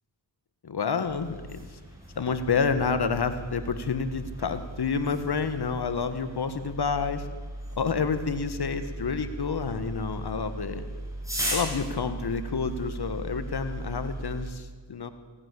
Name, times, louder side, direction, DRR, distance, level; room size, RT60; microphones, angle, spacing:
voice 1, 0.6-1.7 2.1-7.3 7.8-10.8 11.5-15.1, left 5 dB, 55° left, 11 dB, 1.5 m, -29 dB
sound 1, 1.1-14.5, right 1 dB, 5° right, 6.6 m, -37 dB
17.0 x 9.6 x 8.3 m, 1.4 s
supercardioid pair, 40°, 46 cm